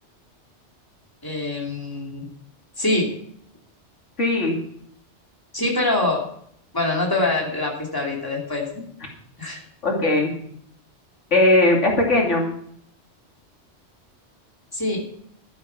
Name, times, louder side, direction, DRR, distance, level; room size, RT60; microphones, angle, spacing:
voice 1, 1.2-2.3 2.8-3.1 5.5-6.2 6.7-8.6 9.4-9.6 14.7-15.0, left 2 dB, 20° left, -2 dB, 3.0 m, -24 dB
voice 2, 4.2-4.5 9.8-10.3 11.3-12.5, left 2 dB, 85° left, -1 dB, 3.1 m, -18 dB
12.0 x 9.5 x 6.0 m, 0.65 s
omnidirectional pair, 1.2 m